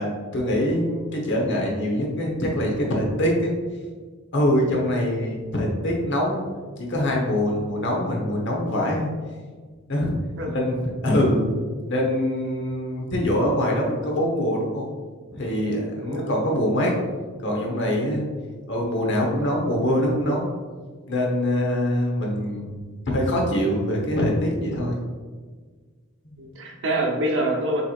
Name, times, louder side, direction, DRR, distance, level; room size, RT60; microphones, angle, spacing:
voice 1, 0.0-3.5 4.3-6.4 6.8-9.1 9.9-10.1 10.5-10.8 11.0-11.4 11.9-14.9 15.3-16.9 17.4-18.2 18.7-20.5 21.1-25.0 26.2-26.3, left 1 dB, 55° left, -1 dB, 1.0 m, -24 dB
voice 2, 16.0-16.3 26.4-27.8, right 1 dB, 60° right, 1 dB, 0.8 m, -26 dB
6.9 x 3.0 x 2.4 m, 1.5 s
head